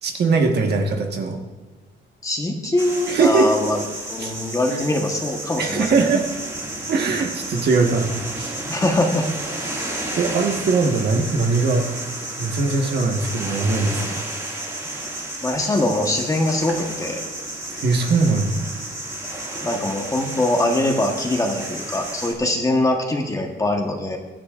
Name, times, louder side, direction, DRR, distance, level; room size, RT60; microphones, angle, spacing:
voice 1, 0.0-1.4 3.1-3.5 4.2-4.3 4.7-4.8 5.6-6.2 6.9-8.5 10.2-11.8 12.4-14.2 17.7-18.6, right 4 dB, 55° right, 2 dB, 1.4 m, -21 dB
voice 2, 2.2-3.8 4.1-6.0 8.7-9.3 15.4-17.2 19.6-24.2, left 1 dB, 15° left, 2 dB, 1.2 m, -22 dB
sound 1, 2.8-22.3, right 1 dB, 15° right, 2.1 m, -32 dB
22.5 x 10.5 x 2.5 m, 1.2 s
cardioid pair, 170°, 20 cm